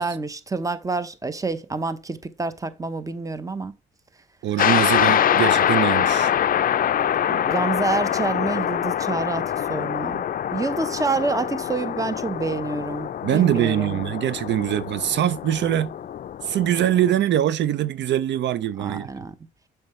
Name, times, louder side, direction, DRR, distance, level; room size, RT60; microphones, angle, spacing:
voice 1, 0.0-3.8 7.3-14.0 18.8-19.3, right 3 dB, 15° right, 0.8 m, -28 dB
voice 2, 4.4-6.3 13.2-15.9 16.4-19.1, right 11 dB, 65° right, 0.4 m, -23 dB
sound 1, 4.6-17.1, left 10 dB, 45° left, 0.4 m, -24 dB
7.1 x 5.8 x 3.1 m
cardioid pair, 90°, 20 cm